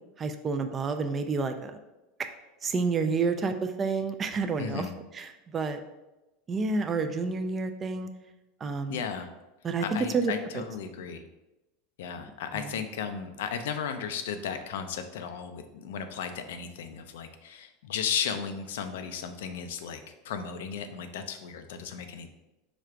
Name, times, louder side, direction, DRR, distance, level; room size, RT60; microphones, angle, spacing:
voice 1, 0.2-1.8 2.6-4.9 5.1-5.8 6.5-8.1 8.6-9.0 9.6-9.8 10.1-10.6 12.5-12.7, right 4 dB, 25° right, 7 dB, 0.4 m, -29 dB
voice 2, 4.6-4.9 8.9-9.3 9.8-11.2 12.0-22.3, left 7 dB, 85° left, 8 dB, 0.5 m, -35 dB
4.9 x 2.4 x 4.4 m, 1.0 s
supercardioid pair, 135°, 0 cm